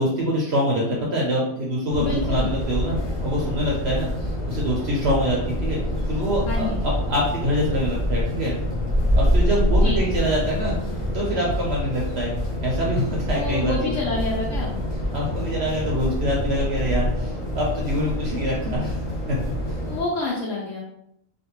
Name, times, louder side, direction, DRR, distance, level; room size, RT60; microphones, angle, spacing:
voice 1, 0.0-5.8 6.1-8.5 9.2-10.9 11.1-14.0 15.1-19.0 19.3-19.4, equal, 65° right, -4 dB, 0.7 m, -25 dB
sound 1, 1.9-20.0, equal, 30° left, 0.6 m, -26 dB
voice 2, 2.0-2.5 6.5-6.8 9.7-10.0 13.3-14.8 19.8-20.8, left 2 dB, 70° left, -3 dB, 0.9 m, -28 dB
2.5 x 2.1 x 2.9 m, 0.77 s
omnidirectional pair, 1.4 m